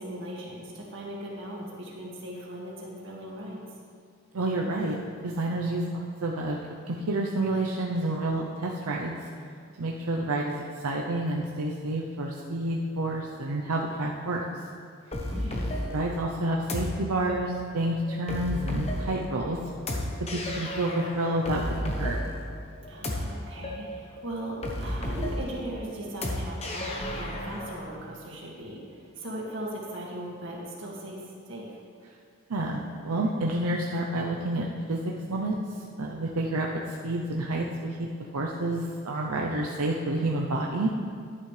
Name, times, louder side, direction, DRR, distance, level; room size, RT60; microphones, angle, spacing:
voice 1, 0.0-3.6 15.2-15.7 22.9-31.2 31.5-31.8, right 1 dB, 55° right, -4 dB, 2.1 m, -38 dB
voice 2, 4.3-5.0 5.2-6.6 6.9-9.2 9.8-14.4 15.9-19.6 20.2-22.2 32.5-35.6 36.0-38.1 38.3-40.9, right 1 dB, 85° right, -1 dB, 0.7 m, -29 dB
sound 1, 15.1-27.8, left 1 dB, 30° left, 0.9 m, -33 dB
11.0 x 10.0 x 3.3 m, 2.2 s
head